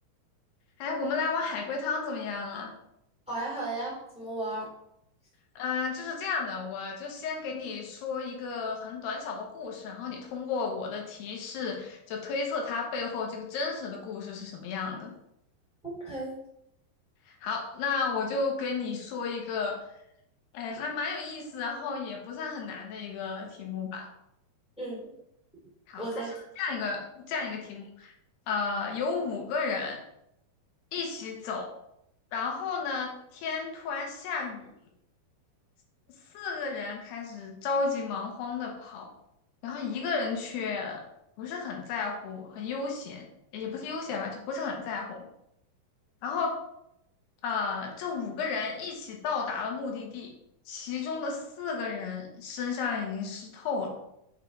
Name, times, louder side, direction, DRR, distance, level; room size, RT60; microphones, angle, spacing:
voice 1, 0.8-2.7 5.6-15.1 17.3-19.8 20.5-24.1 25.9-26.2 26.6-27.0 27.3-28.1 28.5-30.0 30.9-31.7 32.3-34.7 36.3-39.1 39.6-41.0 41.4-43.3 43.5-45.2 46.2-46.6 47.4-50.3 50.7-53.9, left 4 dB, 85° left, 1 dB, 3.3 m, -33 dB
voice 2, 3.3-4.7 15.8-16.3 24.8-25.1 26.0-26.3, right 2 dB, ahead, -5 dB, 2.1 m, -34 dB
6.8 x 5.0 x 4.8 m, 0.80 s
omnidirectional pair, 4.5 m